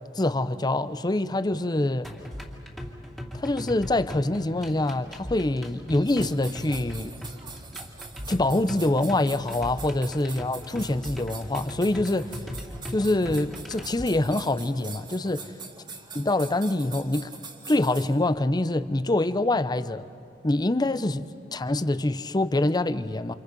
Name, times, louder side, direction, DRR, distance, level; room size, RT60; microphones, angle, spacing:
voice 1, 0.1-2.1 3.3-7.1 8.3-12.4 12.9-15.6 16.1-17.3 17.7-20.1 20.4-23.4, left 2 dB, 20° left, 0.7 m, -25 dB
sound 1, 2.0-14.0, equal, ahead, 2.6 m, -39 dB
sound 2, 6.1-18.2, right 4 dB, 25° right, 2.1 m, -43 dB
29.5 x 27.5 x 5.3 m
head